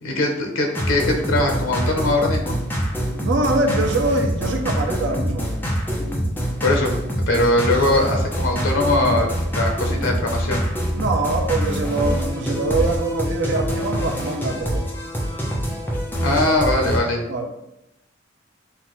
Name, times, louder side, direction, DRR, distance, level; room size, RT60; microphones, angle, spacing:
voice 1, 0.0-2.6 6.6-6.9 7.3-10.6 16.2-17.3, left 2 dB, 85° left, 3 dB, 0.7 m, -21 dB
sound 1, 0.7-17.0, equal, 10° left, 0.7 m, -25 dB
voice 2, 3.2-5.5 10.9-14.9 15.1-15.2 17.3-17.5, right 2 dB, 65° right, 4 dB, 0.5 m, -24 dB
5.6 x 2.4 x 3.0 m, 0.87 s
head